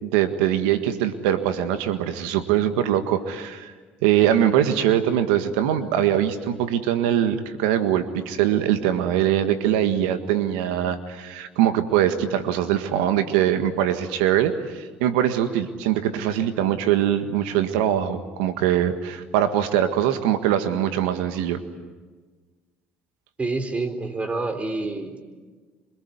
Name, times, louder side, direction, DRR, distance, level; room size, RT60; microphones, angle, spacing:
voice 1, 0.0-3.7 4.0-21.6, right 10 dB, 85° right, 9 dB, 1.7 m, -22 dB
voice 2, 23.4-25.2, right 3 dB, 25° right, 8 dB, 4.0 m, -27 dB
25.5 x 23.5 x 9.6 m, 1.4 s
supercardioid pair, 80°, 5 cm